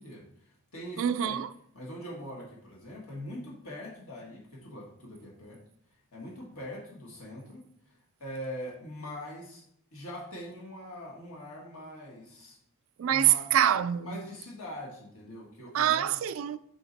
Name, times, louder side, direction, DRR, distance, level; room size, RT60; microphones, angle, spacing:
voice 1, 0.0-1.4 1.7-5.6 6.1-9.6 9.9-12.6 13.1-13.4 14.1-16.2, equal, 75° left, 1.5 m, -42 dB
voice 2, 1.0-1.5 13.0-14.2 15.7-16.6, right 10 dB, 65° right, 0.3 m, -25 dB
5.8 x 4.1 x 3.9 m
head